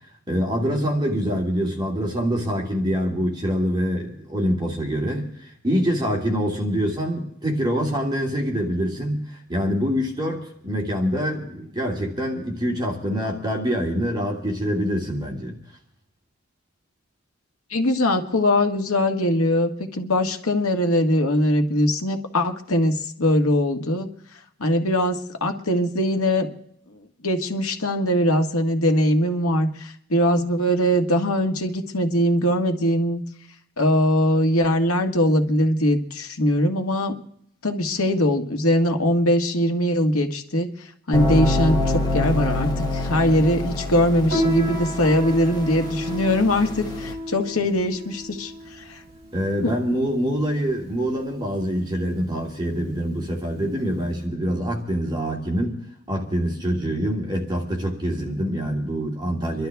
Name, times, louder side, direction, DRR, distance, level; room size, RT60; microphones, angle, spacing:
voice 1, 0.3-15.6 49.3-55.8 56.1-59.7, equal, 20° right, 0 dB, 2.4 m, -25 dB
voice 2, 17.7-24.1 24.6-26.5 27.2-33.2 33.8-37.1 37.6-49.0 49.6-49.7, left 1 dB, 80° left, 5 dB, 1.7 m, -21 dB
sound 1, 41.1-47.1, left 2 dB, 20° left, 2.8 m, -26 dB
Piano, 44.3-54.2, left 1 dB, 40° right, 7.1 m, -32 dB
27.5 x 12.0 x 3.5 m, 0.70 s
head